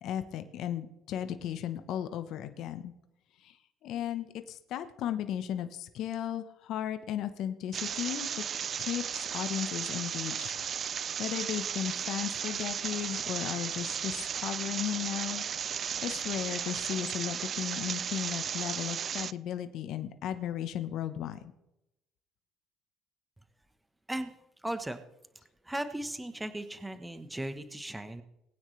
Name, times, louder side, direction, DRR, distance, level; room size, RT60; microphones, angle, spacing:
voice 1, 0.0-2.9 3.4-3.6 3.8-8.4 8.8-10.5 10.9-15.4 15.7-21.4, left 10 dB, 70° left, 9 dB, 1.0 m, -35 dB
sound 1, 7.7-19.3, right 8 dB, 50° right, 0.3 m, -35 dB
voice 2, 24.6-25.0 25.6-28.2, right 1 dB, 10° right, 10 dB, 1.1 m, -37 dB
20.5 x 9.3 x 3.3 m, 0.87 s
supercardioid pair, 80°, 0 cm